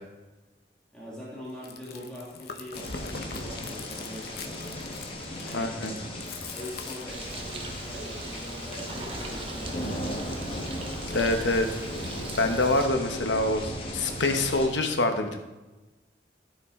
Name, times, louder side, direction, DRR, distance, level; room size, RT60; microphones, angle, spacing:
voice 1, 0.9-4.6 5.4-6.0 6.5-10.4, equal, 5° left, -7 dB, 1.9 m, -43 dB
Chewing mastication, 1.5-7.6, left 4 dB, 60° left, 0.8 m, -42 dB
sound 1, 2.7-14.7, left 1 dB, 30° left, 1.3 m, -37 dB
voice 2, 5.5-5.9 11.1-11.8 12.4-15.4, left 2 dB, 90° left, 5 dB, 1.1 m, -25 dB
Bird, 7.1-12.9, right 2 dB, 30° right, 0.9 m, -40 dB
13.0 x 5.8 x 3.7 m, 1.1 s
head